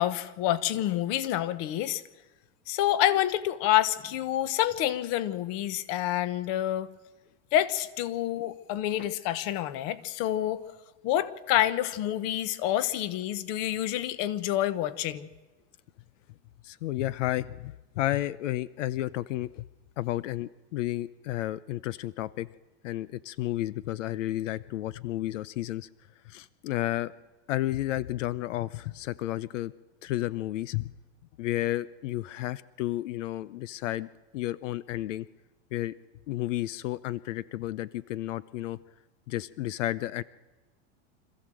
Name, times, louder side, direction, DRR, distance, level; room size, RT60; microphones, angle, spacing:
voice 1, 0.0-2.0 2.7-6.9 7.5-10.6 11.0-15.3, left 12 dB, 40° left, 1.1 m, -28 dB
voice 2, 16.6-19.6 20.0-22.5 22.8-25.9 26.3-27.1 27.5-29.7 30.0-30.9 31.4-34.1 34.3-35.3 35.7-35.9 36.3-38.8 39.3-40.2, left 15 dB, 85° left, 0.7 m, -32 dB
26.0 x 14.5 x 7.7 m
supercardioid pair, 155°, 36 cm